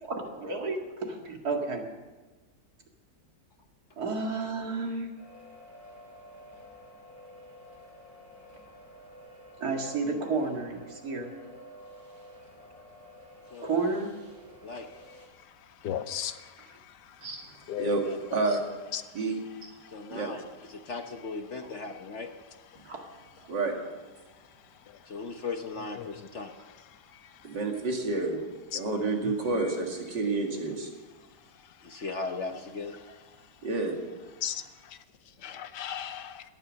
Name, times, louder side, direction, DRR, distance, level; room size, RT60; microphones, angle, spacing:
voice 1, 0.0-1.8 4.0-5.1 9.6-11.3 13.6-14.1 22.8-23.0, right 3 dB, 60° right, 2 dB, 2.6 m, -31 dB
sound 1, 5.1-15.3, equal, 40° right, 7.6 m, -51 dB
voice 2, 15.8-16.3 17.7-17.9 18.9-19.0 28.7-28.8 34.4-34.6 35.4-36.4, left 10 dB, 75° left, 12 dB, 1.3 m, -34 dB
voice 3, 18.3-18.6 19.1-19.7 20.1-20.3 23.5-23.7 27.4-28.4 28.7-30.9 33.6-34.0, right 3 dB, 80° right, 1 dB, 2.9 m, -29 dB
voice 4, 19.9-20.4 20.7-22.3 25.1-26.5 31.8-32.9 35.4-35.7, left 4 dB, 50° left, 5 dB, 1.1 m, -37 dB
17.0 x 11.5 x 6.4 m, 1.2 s
omnidirectional pair, 1.9 m